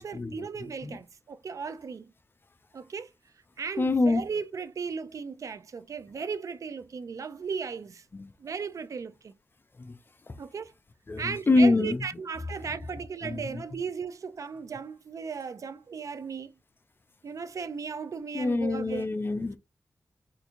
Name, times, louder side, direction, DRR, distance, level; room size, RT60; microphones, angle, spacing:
voice 1, 0.0-2.1 2.7-3.1 3.6-8.0 8.4-9.3 10.4-10.7 11.2-16.5 17.2-19.1, right 5 dB, 65° right, 0.3 m, -36 dB
voice 2, 3.8-4.2 11.1-12.0 13.2-13.4 18.3-19.6, left 2 dB, 35° left, 0.4 m, -24 dB
3.6 x 2.5 x 2.8 m
wide cardioid pair, 85°, 6 cm